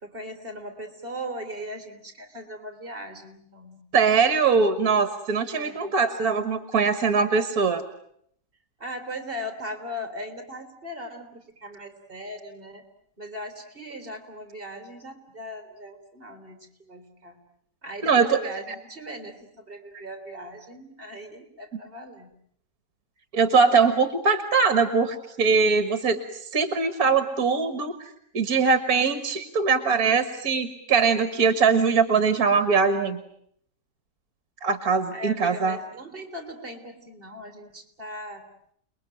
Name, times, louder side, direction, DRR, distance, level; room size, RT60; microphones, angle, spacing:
voice 1, 0.0-3.8 5.5-5.9 8.8-12.9 13.2-17.4 17.8-22.3 35.1-38.5, equal, 30° right, 7 dB, 3.7 m, -39 dB
voice 2, 3.9-7.8 18.0-18.4 23.3-33.2 34.6-35.8, right 5 dB, 60° right, 11 dB, 2.0 m, -22 dB
29.5 x 21.0 x 9.0 m, 0.69 s
omnidirectional pair, 1.8 m